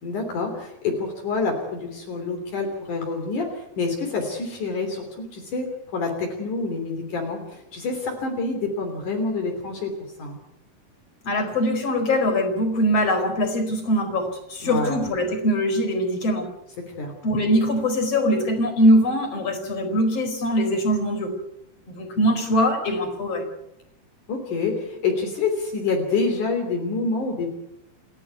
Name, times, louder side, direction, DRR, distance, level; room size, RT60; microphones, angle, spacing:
voice 1, 0.0-9.9 10.2-10.4 14.6-15.0 16.9-17.1 24.3-27.5, left 4 dB, 60° left, 3 dB, 4.7 m, -27 dB
voice 2, 11.3-16.5 17.2-21.3 21.9-23.5, equal, 45° left, 6 dB, 5.4 m, -22 dB
29.5 x 13.0 x 9.4 m, 0.84 s
omnidirectional pair, 4.0 m